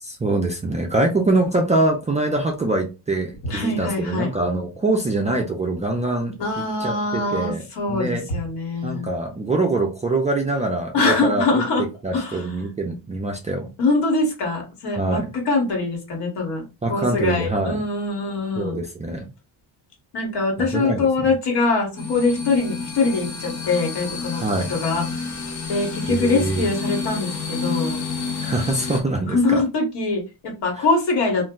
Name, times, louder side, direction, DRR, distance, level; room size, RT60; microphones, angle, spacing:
voice 1, 0.0-7.6 7.9-8.2 8.8-11.6 12.0-13.7 15.0-15.2 16.8-17.8 18.6-19.3 20.6-21.3 24.4-24.7 26.1-26.7 28.4-29.6 30.8-30.9, right 2 dB, 15° right, 1 dB, 0.3 m, -24 dB
voice 2, 3.4-4.3 6.4-9.1 10.9-11.8 12.1-12.6 13.8-18.8 20.1-24.4 24.7-25.3 25.7-28.0 29.3-31.5, left 3 dB, 65° left, 1 dB, 1.5 m, -23 dB
sound 1, 22.0-29.0, left 4 dB, 40° left, 0.7 m, -29 dB
2.5 x 2.1 x 3.6 m, 0.28 s
cardioid pair, 125°, 44 cm